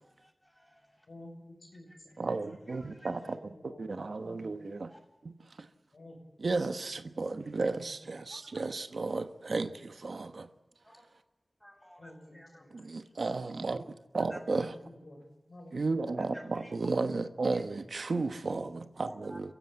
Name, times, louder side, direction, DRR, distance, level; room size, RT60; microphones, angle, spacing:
voice 1, 0.0-1.1 1.9-2.2 2.7-3.3 4.9-5.0 7.4-7.6 8.3-8.4 10.8-11.0 11.6-13.1 14.3-14.4 16.2-16.9 17.5-17.6 19.0-19.4, equal, 5° left, 7.3 m, -53 dB
voice 2, 1.1-1.9 3.2-3.8 4.2-4.5 5.9-6.7 7.8-7.9 12.0-12.7 14.5-15.2 15.5-15.9, left 1 dB, 85° left, 6.4 m, -51 dB
voice 3, 2.2-4.9 5.2-5.3 5.6-5.7 6.4-10.5 12.7-13.8 14.1-14.7 15.7-19.5, right 3 dB, 80° right, 1.1 m, -34 dB
29.0 x 15.5 x 8.6 m
wide cardioid pair, 65°, 0 cm